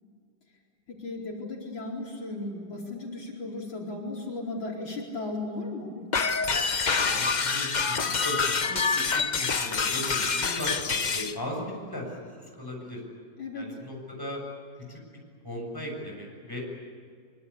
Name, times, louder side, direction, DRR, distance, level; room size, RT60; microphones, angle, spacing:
voice 1, 0.9-6.0 13.4-13.8, left 2 dB, 85° left, -2 dB, 5.3 m, -36 dB
sound 1, 6.1-11.3, left 5 dB, 40° left, 0.6 m, -26 dB
voice 2, 7.0-13.0 13.5-14.4 14.9-15.0 15.4-16.6, left 1 dB, 10° left, -1 dB, 7.3 m, -37 dB
24.5 x 24.0 x 8.5 m, 2.2 s
omnidirectional pair, 2.1 m